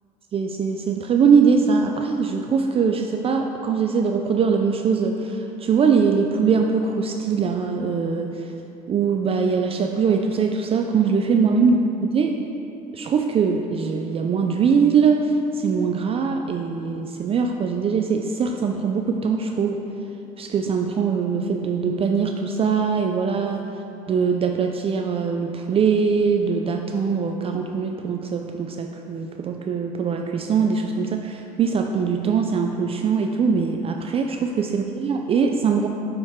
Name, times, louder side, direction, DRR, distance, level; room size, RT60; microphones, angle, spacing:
voice 1, 0.3-8.5 8.9-11.8 12.1-12.3 12.9-19.8 20.4-23.6 24.1-35.9, right 5 dB, 35° right, 4 dB, 0.4 m, -22 dB
7.0 x 6.3 x 3.6 m, 2.7 s
supercardioid pair, 100°, 16 cm